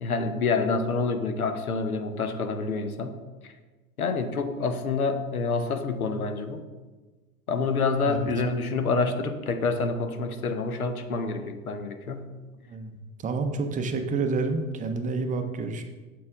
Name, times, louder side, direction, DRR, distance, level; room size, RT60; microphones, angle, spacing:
voice 1, 0.0-3.2 3.4-3.5 4.0-6.6 7.5-12.3, left 4 dB, 90° left, 8 dB, 0.7 m, -27 dB
voice 2, 13.2-15.8, right 4 dB, 20° right, 6 dB, 0.6 m, -28 dB
7.4 x 4.3 x 3.5 m, 1.3 s
figure-of-eight pair, 85°, 42 cm